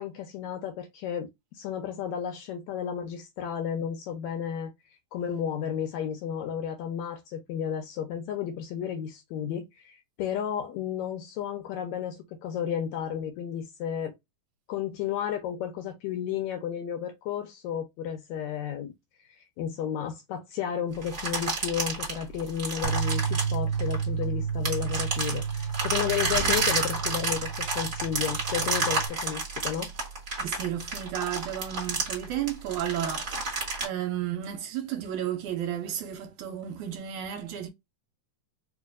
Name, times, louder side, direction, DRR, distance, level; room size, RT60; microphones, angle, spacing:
voice 1, 0.0-4.7 5.1-14.1 14.7-18.9 19.4-29.9, left 9 dB, 75° left, 1.8 m, -33 dB
sound 1, 21.0-24.2 24.7-33.8, right 3 dB, 40° right, 1.2 m, -30 dB
Bass guitar, 22.8-29.1, right 7 dB, 40° left, 1.1 m, -31 dB
voice 2, 30.4-37.7, right 10 dB, 75° right, 2.0 m, -33 dB
4.9 x 2.5 x 2.4 m
omnidirectional pair, 3.8 m